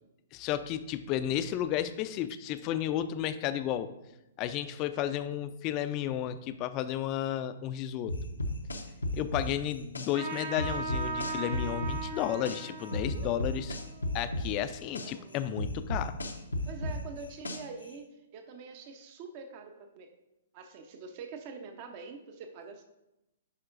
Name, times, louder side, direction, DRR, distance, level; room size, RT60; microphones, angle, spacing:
voice 1, 0.3-3.9 4.4-8.1 9.1-13.8 14.1-16.2, left 11 dB, 35° left, 12 dB, 0.4 m, -32 dB
sound 1, 8.1-10.1 10.6-12.6 12.9-15.1 15.6-17.8, left 1 dB, 85° left, 0.7 m, -33 dB
Trumpet, 10.1-15.1, right 4 dB, 65° right, 2.0 m, -39 dB
voice 2, 13.0-13.3 14.9-15.4 16.7-20.1 20.5-22.8, right 5 dB, 40° right, 5 dB, 0.7 m, -45 dB
11.0 x 4.3 x 2.5 m, 0.91 s
figure-of-eight pair, 120°, 0 cm